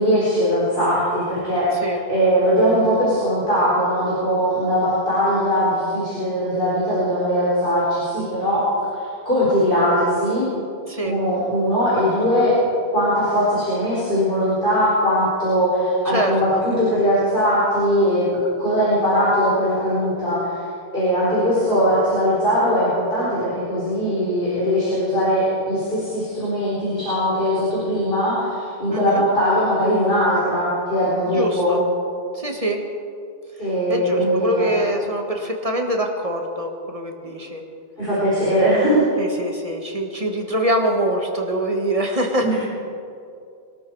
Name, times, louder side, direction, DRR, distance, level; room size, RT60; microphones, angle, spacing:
voice 1, 0.0-8.6 9.2-10.5 11.0-12.5 12.9-18.2 18.6-20.6 20.9-31.8 33.6-34.7 37.2-37.3 38.0-39.0 42.4-42.5, equal, 55° left, -9 dB, 4.9 m, -20 dB
voice 2, 16.1-16.6 28.9-29.2 31.3-31.8 32.3-32.8 33.9-37.6 39.2-42.5, right 1 dB, 35° right, 2 dB, 1.7 m, -24 dB
22.5 x 12.5 x 4.8 m, 2.4 s
omnidirectional pair, 1.1 m